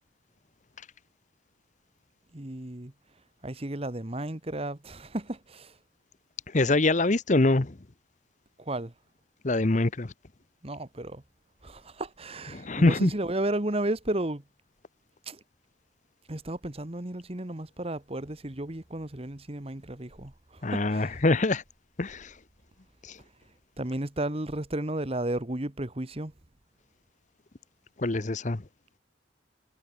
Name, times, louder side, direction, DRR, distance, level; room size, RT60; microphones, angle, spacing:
voice 1, 2.3-2.9 3.4-5.8 8.6-8.9 10.6-11.2 11.6-14.4 15.3-15.4 16.3-21.2 23.8-26.3, right 1 dB, 30° right, 1.4 m, -33 dB
voice 2, 6.5-7.8 9.4-10.1 12.5-13.1 20.6-21.6 22.0-22.3 23.0-23.2 28.0-28.6, left 2 dB, 40° left, 0.9 m, -24 dB
head